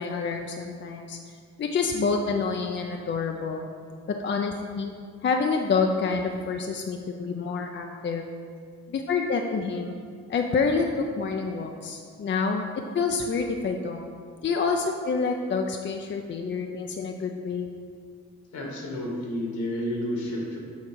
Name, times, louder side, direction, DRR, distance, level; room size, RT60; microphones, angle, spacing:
voice 1, 0.0-3.7 4.2-4.9 5.2-8.2 8.9-9.9 10.3-12.6 12.9-14.1 14.4-17.7, left 4 dB, 40° left, 3 dB, 0.5 m, -27 dB
voice 2, 18.5-20.6, left 1 dB, 75° left, -1 dB, 1.9 m, -30 dB
7.2 x 3.7 x 6.2 m, 2.1 s
cardioid pair, 90°, 30 cm